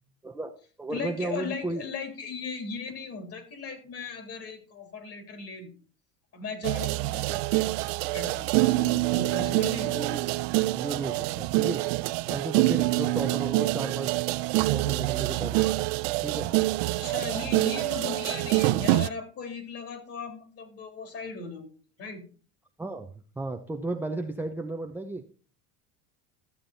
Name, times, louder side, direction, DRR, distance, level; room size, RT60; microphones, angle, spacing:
voice 1, 0.2-1.8 7.3-7.4 9.9-10.3 10.7-11.8 12.3-14.2 14.7-15.9 16.2-16.5 22.8-25.2, right 2 dB, 5° right, 3 dB, 0.7 m, -34 dB
voice 2, 0.9-5.7 6.3-9.9 16.8-21.7 22.0-22.2, left 4 dB, 40° left, 6 dB, 3.5 m, -37 dB
sound 1, 6.6-19.1, right 20 dB, 65° right, 0.6 m, -26 dB
13.5 x 7.5 x 4.1 m, 0.38 s
supercardioid pair, 125°, 36 cm